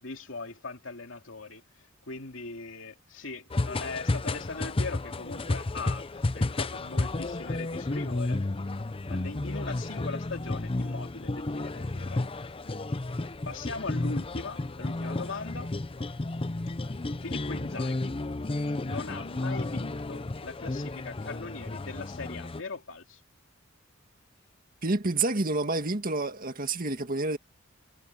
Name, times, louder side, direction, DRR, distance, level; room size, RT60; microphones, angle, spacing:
voice 1, 0.0-1.6 2.1-6.1 6.3-8.4 9.1-12.4 13.4-15.7 17.2-18.2 18.8-23.2, left 3 dB, 80° left, 2.6 m, -40 dB
sound 1, 3.5-22.6, left 2 dB, 30° left, 0.6 m, -32 dB
voice 2, 24.8-27.4, right 2 dB, 45° right, 2.0 m, -28 dB
head